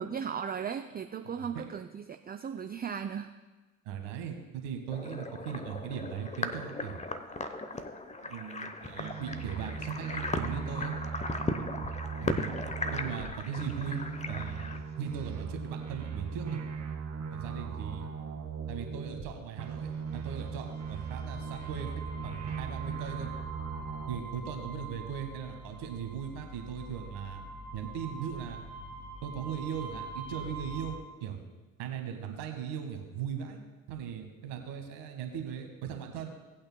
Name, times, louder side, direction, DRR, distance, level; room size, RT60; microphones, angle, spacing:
voice 1, 0.0-3.3, right 7 dB, 20° right, 8 dB, 0.5 m, -36 dB
voice 2, 1.3-1.6 3.8-7.0 8.2-10.9 12.2-12.5 12.9-16.6 17.3-18.1 18.7-21.9 22.2-23.3 24.1-27.4 27.7-28.6 29.2-31.4 31.8-33.6 33.9-36.3, right 8 dB, 70° right, 4 dB, 1.6 m, -39 dB
sound 1, 4.9-14.8, left 2 dB, 15° left, 0.9 m, -37 dB
sound 2, 9.0-13.3 13.6-19.3 19.6-24.2, right 5 dB, 40° right, 2.0 m, -38 dB
sound 3, 19.9-31.0, right 2 dB, 85° left, 2.9 m, -44 dB
18.5 x 8.6 x 2.2 m, 1.3 s
hypercardioid pair, 50°, 44 cm